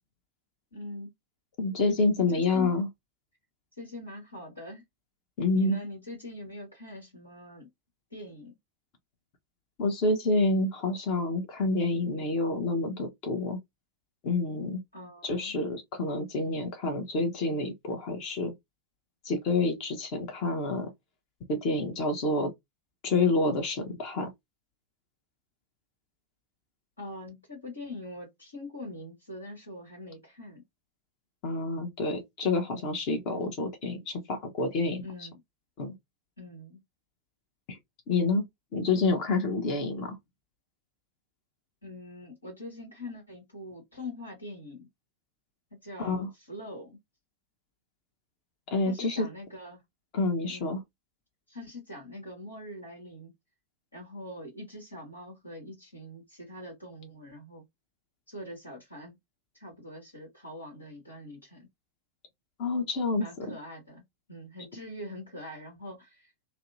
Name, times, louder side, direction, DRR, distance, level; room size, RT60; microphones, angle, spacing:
voice 1, 0.7-1.1 2.2-2.7 3.8-4.8 5.5-7.7 8.1-8.6 14.9-15.6 27.0-30.6 35.0-35.4 36.4-36.8 41.8-44.9 45.7-47.0 48.8-49.8 50.5-50.7 51.5-53.3 53.9-57.6 58.3-59.2 59.5-61.7 63.2-66.5, left 1 dB, 75° left, 1.2 m, -43 dB
voice 2, 1.6-2.9 5.4-5.8 9.8-13.6 14.2-14.8 15.2-18.5 19.2-20.9 21.5-22.5 23.0-24.3 31.4-35.3 35.8-35.9 37.7-37.8 38.1-38.4 38.7-40.2 46.0-46.3 48.7-49.3 50.1-50.8 62.6-63.6, left 3 dB, 40° left, 0.7 m, -28 dB
2.7 x 2.0 x 2.6 m
figure-of-eight pair, 90°, 0 cm